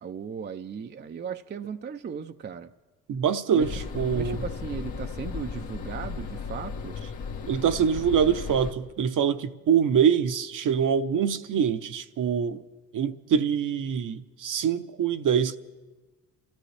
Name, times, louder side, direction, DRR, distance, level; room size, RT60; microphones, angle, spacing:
voice 1, 0.0-2.7 3.5-7.0, right 7 dB, 25° right, 0.6 m, -37 dB
voice 2, 3.1-4.4 7.5-12.6 12.9-15.6, right 7 dB, 50° right, 0.9 m, -24 dB
sound 1, 3.6-8.7, left 5 dB, 70° left, 1.6 m, -35 dB
27.5 x 13.5 x 3.4 m
hypercardioid pair, 60°, 39 cm